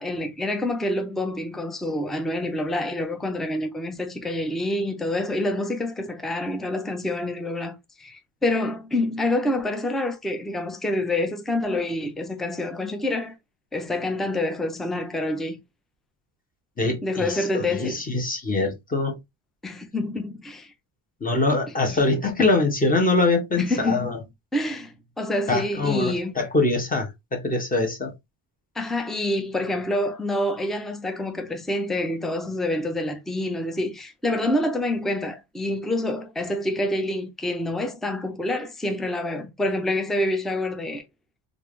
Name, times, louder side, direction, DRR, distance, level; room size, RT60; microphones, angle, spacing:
voice 1, 0.0-13.3 13.7-15.6 17.0-18.0 19.6-20.7 21.9-22.0 23.6-24.1 24.5-26.3 28.8-41.0, left 1 dB, ahead, 0.4 m, -27 dB
voice 2, 16.8-19.2 21.2-24.2 25.5-28.1, left 3 dB, 20° left, 1.0 m, -23 dB
3.4 x 2.5 x 3.2 m
cardioid pair, 135°, 44 cm